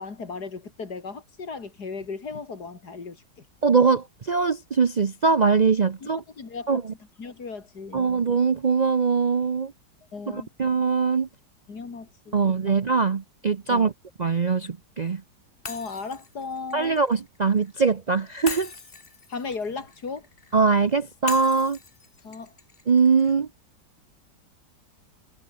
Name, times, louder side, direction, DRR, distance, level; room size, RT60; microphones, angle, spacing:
voice 1, 0.0-3.5 6.0-6.8 7.2-8.1 10.1-10.5 11.7-12.5 13.7-13.9 15.7-17.0 19.3-20.3 22.2-22.5, left 4 dB, 60° left, 3.5 m, -36 dB
voice 2, 3.6-6.2 6.7-6.9 7.9-9.7 10.3-11.3 12.3-13.9 14.2-15.2 16.7-18.7 20.5-21.8 22.9-23.5, right 5 dB, 85° right, 0.3 m, -22 dB
Shatter, 15.7-17.7 18.5-20.6 21.3-23.4, left 4 dB, 30° left, 1.9 m, -41 dB
omnidirectional pair, 1.9 m